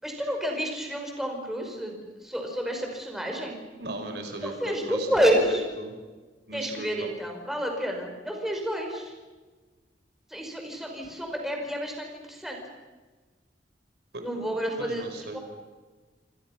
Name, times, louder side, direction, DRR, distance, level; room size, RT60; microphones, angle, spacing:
voice 1, 0.0-3.5 4.4-5.6 6.5-9.1 10.3-12.6 14.2-15.0 15.3-15.4, equal, ahead, 1 dB, 5.4 m, -29 dB
voice 2, 3.8-6.0 6.5-7.1 14.1-14.4 14.8-15.4, right 2 dB, 65° right, 5 dB, 4.8 m, -37 dB
29.5 x 26.0 x 6.0 m, 1.3 s
head